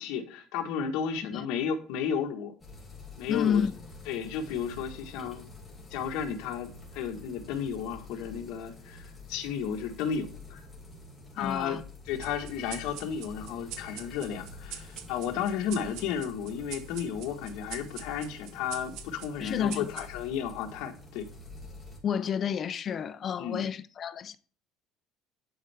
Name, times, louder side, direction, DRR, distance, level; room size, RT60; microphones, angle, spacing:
voice 1, 0.0-2.5 3.2-3.6 4.1-5.4 5.9-10.6 11.4-21.3 23.4-23.6, left 7 dB, 75° left, 1.3 m, -33 dB
sound 1, 2.6-22.0, left 3 dB, 10° left, 2.2 m, -47 dB
voice 2, 3.3-3.8 11.3-11.8 19.4-20.1 22.0-24.4, left 8 dB, 35° left, 0.4 m, -30 dB
sound 2, 12.2-21.1, right 10 dB, 70° right, 0.9 m, -46 dB
11.0 x 4.5 x 3.3 m
cardioid pair, 160°, 0 cm